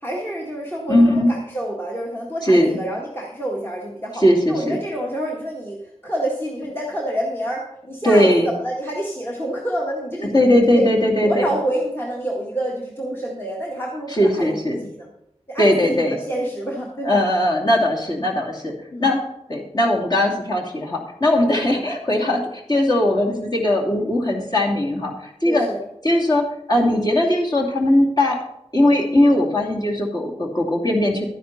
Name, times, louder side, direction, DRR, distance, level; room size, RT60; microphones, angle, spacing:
voice 1, 0.0-10.4 10.7-10.9 11.2-15.1 15.5-17.2 18.9-19.1 25.4-25.8, right 1 dB, 20° left, -3 dB, 1.7 m, -28 dB
voice 2, 0.9-1.3 2.4-2.8 4.2-4.8 8.0-8.5 10.3-11.5 14.1-14.8 15.6-16.2 17.0-18.7 19.0-19.2 19.5-22.4 22.7-25.7 26.0-28.4 28.7-31.3, left 1 dB, 35° left, -2 dB, 2.7 m, -19 dB
12.0 x 10.0 x 4.1 m, 0.82 s
wide cardioid pair, 70°, 11 cm